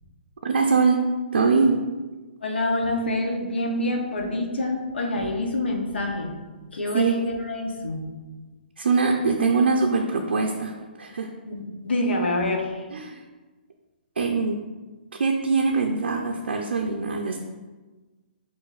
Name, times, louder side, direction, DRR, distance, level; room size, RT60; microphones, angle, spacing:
voice 1, 0.4-1.0 1.3-1.8 6.9-7.2 8.8-11.3 12.9-13.2 14.2-14.6 15.1-17.4, right 4 dB, 80° right, 2 dB, 0.4 m, -22 dB
voice 2, 2.4-6.3 6.7-8.1 11.5-12.8, left 1 dB, 85° left, 2 dB, 0.7 m, -26 dB
6.5 x 2.5 x 2.3 m, 1.3 s
hypercardioid pair, 150°, 6 cm